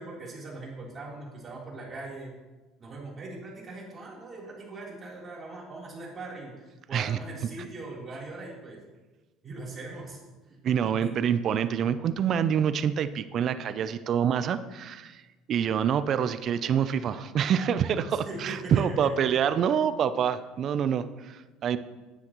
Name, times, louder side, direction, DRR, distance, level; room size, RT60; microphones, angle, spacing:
voice 1, 0.0-2.3 2.8-8.8 9.4-10.2 10.4-10.6 10.8-11.1 18.1-19.1, right 2 dB, 30° right, -4 dB, 3.4 m, -41 dB
voice 2, 10.6-15.2 15.5-21.8, right 8 dB, 50° right, 13 dB, 0.4 m, -26 dB
10.5 x 9.7 x 3.0 m, 1.2 s
supercardioid pair, 110°, 0 cm